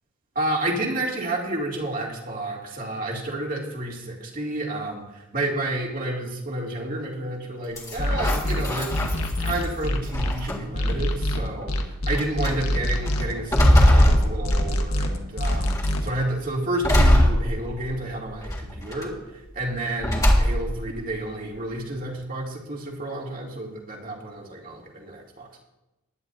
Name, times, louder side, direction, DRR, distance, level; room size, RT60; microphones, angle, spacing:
voice 1, 0.3-9.0 9.4-25.6, right 1 dB, 40° right, -1 dB, 2.5 m, -30 dB
sound 1, 7.8-9.6 10.1-10.9 11.6-11.7 12.2-12.5 13.1-15.0 15.4-16.0 16.8-18.0 18.4-19.0 20.0-20.8, equal, 15° left, 1.8 m, -21 dB
sound 2, 8.0-10.3 10.7-16.1, left 1 dB, 90° left, 1.4 m, -25 dB
19.5 x 10.5 x 2.7 m, 0.97 s
head